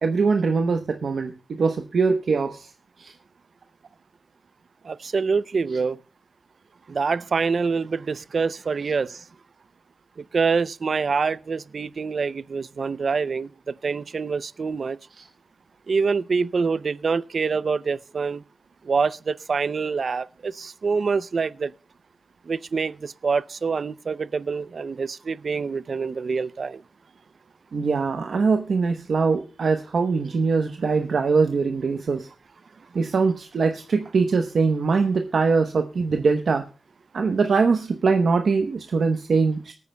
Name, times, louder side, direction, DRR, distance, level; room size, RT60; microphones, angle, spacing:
voice 1, 0.0-2.7 3.0-3.1 15.1-15.3 27.7-32.3 32.9-36.6 37.1-39.7, right 4 dB, 80° right, 0.9 m, -22 dB
voice 2, 4.8-6.0 6.9-9.2 10.2-15.0 15.9-18.4 18.8-21.7 22.5-26.8, right 5 dB, 60° right, 0.5 m, -26 dB
23.5 x 9.6 x 2.2 m
wide cardioid pair, 115°, 0 cm